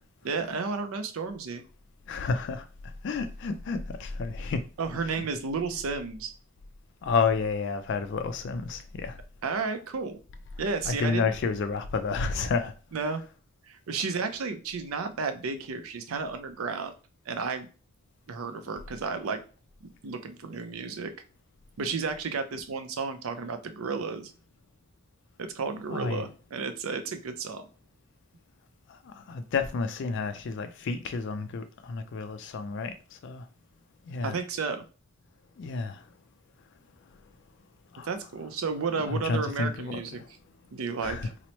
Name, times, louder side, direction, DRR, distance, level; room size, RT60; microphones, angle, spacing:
voice 1, 0.2-1.6 4.8-6.3 9.4-10.2 10.6-11.3 12.9-13.2 13.7-16.9 17.3-17.7 18.3-19.4 20.0-21.1 21.8-24.3 25.4-27.7 34.2-34.8 38.0-40.2 40.7-41.2, right 4 dB, 85° right, 0.5 m, -32 dB
voice 2, 2.1-4.7 7.0-9.2 10.9-12.7 25.9-26.2 28.9-33.5 34.1-34.4 35.6-36.1 37.9-38.1 39.0-40.3 41.0-41.3, left 4 dB, 60° left, 0.3 m, -30 dB
3.0 x 2.0 x 4.1 m
head